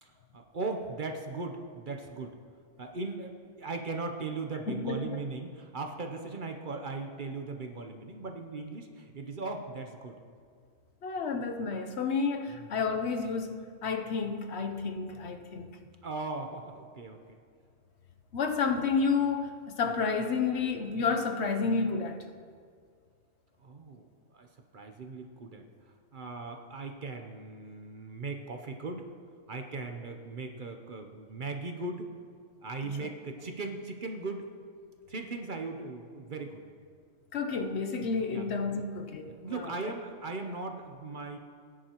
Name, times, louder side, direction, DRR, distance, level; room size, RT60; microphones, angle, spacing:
voice 1, 0.0-2.4 2.8-10.2 16.0-17.4 23.6-24.5 24.7-25.7 26.1-29.1 29.5-32.1 32.6-34.5 35.1-36.7 38.3-38.8 39.3-41.4, right 3 dB, 50° right, 0.8 m, -38 dB
voice 2, 4.7-5.2 11.0-13.6 13.8-15.8 18.3-22.2 32.8-32.9 37.3-39.9, left 5 dB, 65° left, 1.0 m, -30 dB
19.0 x 9.9 x 2.9 m
omnidirectional pair, 1.3 m